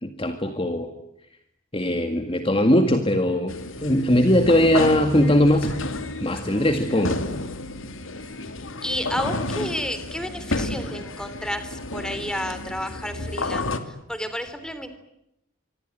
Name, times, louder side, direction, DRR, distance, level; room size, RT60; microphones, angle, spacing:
voice 1, 0.0-0.9 1.7-5.7 6.2-7.2, left 1 dB, 25° left, 7 dB, 1.9 m, -20 dB
sound 1, 3.5-13.8, left 2 dB, 70° left, 2.7 m, -31 dB
voice 2, 8.8-14.9, equal, 5° left, 10 dB, 3.4 m, -31 dB
25.5 x 25.0 x 9.0 m, 0.82 s
head